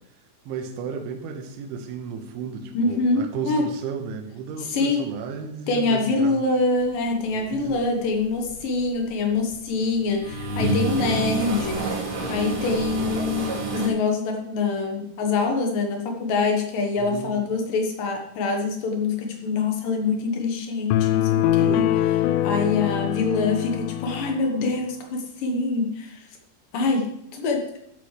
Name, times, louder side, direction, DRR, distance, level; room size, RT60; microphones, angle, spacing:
voice 1, 0.5-6.4 7.3-7.8 17.0-17.4 21.5-22.2, right 6 dB, 80° right, 3 dB, 3.5 m, -34 dB
voice 2, 2.7-3.7 4.7-5.0 5.7-21.8 22.4-26.2 26.7-27.6, left 3 dB, 70° left, 3 dB, 2.2 m, -25 dB
sound 1, 7.5-7.8 8.2-9.6 10.0-13.9, right 2 dB, 35° right, 2.3 m, -28 dB
sound 2, 20.9-24.5, left 13 dB, 85° left, 2.6 m, -23 dB
13.0 x 10.5 x 3.3 m, 0.77 s
omnidirectional pair, 5.7 m